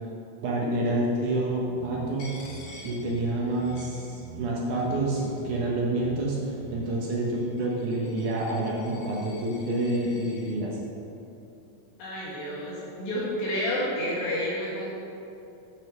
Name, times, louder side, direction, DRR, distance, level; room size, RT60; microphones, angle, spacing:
voice 1, 0.4-2.3 2.8-10.8, right 1 dB, 70° right, -3 dB, 2.0 m, -28 dB
sound 1, 1.6-6.9, right 5 dB, 90° right, 1.8 m, -46 dB
Coin (dropping), 2.2-4.5 4.8-5.6 6.3-10.5, left 2 dB, 85° left, 3.9 m, -50 dB
voice 2, 12.0-14.9, equal, 65° left, -8 dB, 3.5 m, -30 dB
8.5 x 6.2 x 6.1 m, 2.8 s
omnidirectional pair, 4.7 m